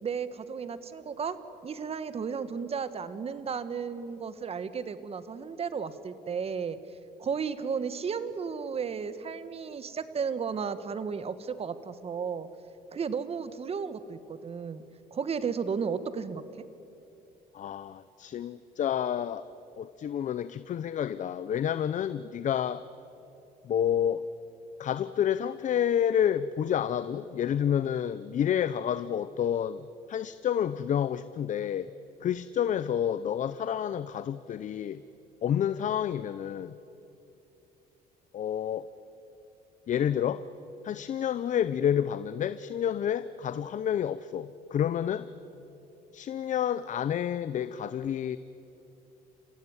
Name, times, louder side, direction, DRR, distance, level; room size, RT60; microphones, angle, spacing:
voice 1, 0.0-1.4 1.6-6.8 7.2-12.5 12.9-14.8 15.1-16.4, right 6 dB, 35° right, 13 dB, 1.5 m, -34 dB
voice 2, 17.5-19.4 19.8-22.8 23.6-24.2 24.8-31.9 32.2-35.0 35.4-36.8 38.3-38.9 39.9-40.4 40.8-45.3 46.1-48.4, left 9 dB, 50° left, 14 dB, 0.7 m, -29 dB
29.0 x 16.0 x 9.9 m, 2.9 s
cardioid pair, 110°, 17 cm